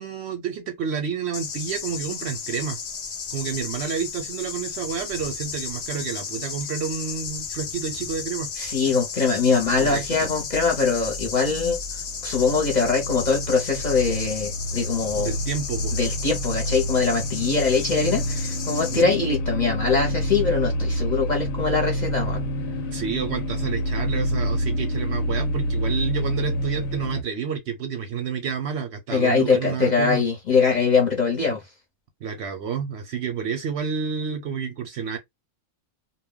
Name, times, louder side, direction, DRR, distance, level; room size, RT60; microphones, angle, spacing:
voice 1, 0.0-2.8 3.3-8.5 9.8-10.3 15.2-15.9 18.9-19.2 22.9-30.2 32.2-35.2, right 7 dB, 65° right, 0.7 m, -29 dB
sound 1, 1.3-19.0, left 6 dB, 75° left, 0.4 m, -34 dB
voice 2, 8.6-11.8 12.2-15.3 15.9-22.4 29.1-31.6, left 4 dB, 40° left, 0.7 m, -22 dB
sound 2, 9.4-27.2, equal, 90° left, 1.0 m, -28 dB
2.2 x 2.2 x 3.5 m
omnidirectional pair, 1.4 m